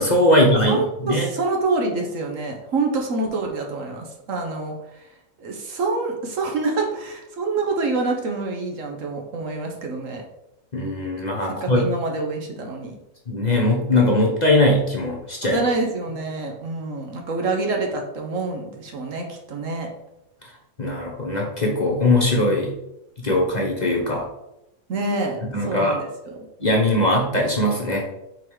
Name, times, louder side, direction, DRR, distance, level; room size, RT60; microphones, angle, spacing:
voice 1, 0.0-1.3 10.7-11.9 13.3-15.6 20.8-22.7 23.2-24.3 25.5-25.9 26.6-28.0, left 1 dB, 35° left, -1 dB, 0.9 m, -20 dB
voice 2, 0.5-5.1 5.4-10.2 11.4-13.0 15.5-19.9 24.9-26.4, right 3 dB, 65° right, 2 dB, 1.4 m, -26 dB
5.4 x 3.9 x 4.7 m, 0.87 s
omnidirectional pair, 1.5 m